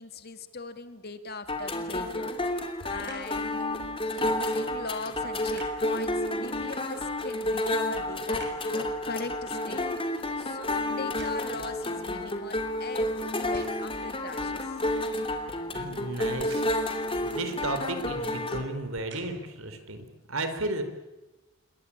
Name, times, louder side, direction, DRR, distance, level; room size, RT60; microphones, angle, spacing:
voice 1, 0.0-2.3 2.8-3.7 4.1-9.9 10.4-14.7, left 3 dB, 45° left, 9 dB, 2.2 m, -40 dB
sound 1, 1.5-18.6, left 1 dB, 25° left, 3.0 m, -30 dB
sound 2, 2.9-3.4 5.4-5.9 7.3-8.8 9.2-11.7 12.4-12.5 13.3-14.0 16.3-16.9 17.9-18.1 18.8-19.6 20.2-20.3, right 3 dB, 55° right, 6.8 m, -49 dB
voice 2, 15.7-16.7 17.2-20.8, right 2 dB, 70° right, 9 dB, 4.3 m, -34 dB
28.0 x 23.0 x 8.8 m, 1.1 s
head